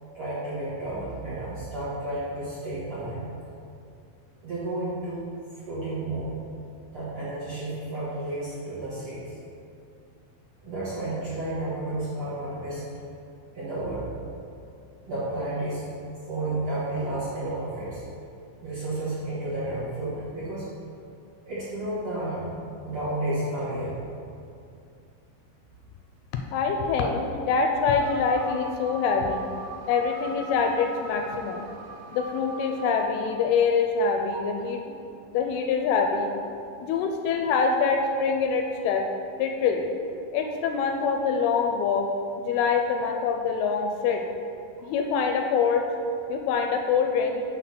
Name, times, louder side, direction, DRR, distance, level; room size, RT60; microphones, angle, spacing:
voice 1, 0.1-3.2 4.4-5.2 5.7-6.3 6.9-9.3 10.6-12.8 13.5-14.1 15.1-15.8 16.3-18.0 18.6-20.6 21.4-22.5 22.8-23.9 27.0-27.3 34.3-34.4, right 1 dB, 45° right, -12 dB, 2.0 m, -31 dB
voice 2, 26.5-29.4 29.9-31.6 32.1-34.9 35.3-36.3 36.8-39.0 39.4-39.9 40.3-42.1 42.5-44.2 44.9-45.8 46.3-47.4, left 5 dB, 85° left, 3 dB, 2.4 m, -25 dB
sound 1, 28.0-33.1, right 3 dB, 85° right, 2.6 m, -42 dB
7.4 x 3.9 x 5.9 m, 2.5 s
omnidirectional pair, 4.6 m